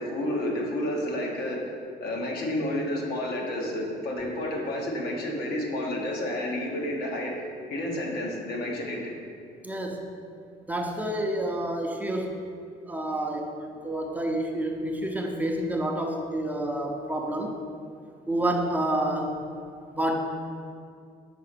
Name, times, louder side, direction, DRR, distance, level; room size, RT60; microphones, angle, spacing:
voice 1, 0.0-1.6 2.0-7.3 7.7-9.1, left 1 dB, 70° left, -1 dB, 1.3 m, -30 dB
voice 2, 9.6-10.1 10.7-12.4 12.9-17.6 18.3-19.4 19.9-20.2, right 1 dB, 10° right, 1 dB, 0.7 m, -29 dB
5.8 x 4.1 x 6.1 m, 2.3 s
cardioid pair, 110°, 17 cm